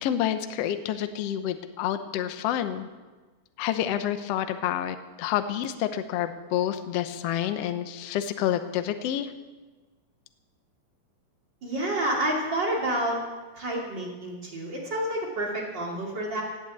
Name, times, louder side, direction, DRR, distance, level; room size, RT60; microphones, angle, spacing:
voice 1, 0.0-2.9 3.6-9.3, left 10 dB, 75° left, 9 dB, 1.4 m, -28 dB
voice 2, 11.6-13.2 13.5-16.4, right 1 dB, 35° right, -2 dB, 3.0 m, -29 dB
18.0 x 8.3 x 8.4 m, 1.3 s
omnidirectional pair, 4.1 m